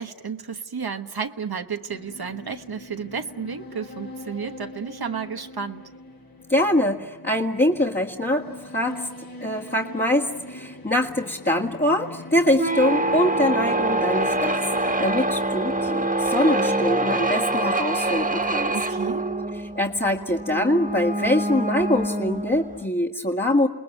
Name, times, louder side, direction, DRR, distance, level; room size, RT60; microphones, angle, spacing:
voice 1, 0.0-5.8 18.7-19.3, right 6 dB, 85° right, 6 dB, 1.2 m, -32 dB
sound 1, 1.9-15.5, left 1 dB, 75° left, 5.4 m, -42 dB
voice 2, 6.5-18.8 19.6-23.7, left 1 dB, 30° left, -1 dB, 1.9 m, -24 dB
sound 2, 12.5-22.8, right 2 dB, 20° right, 1.6 m, -25 dB
29.0 x 20.0 x 9.3 m, 1.3 s
wide cardioid pair, 40°, 37 cm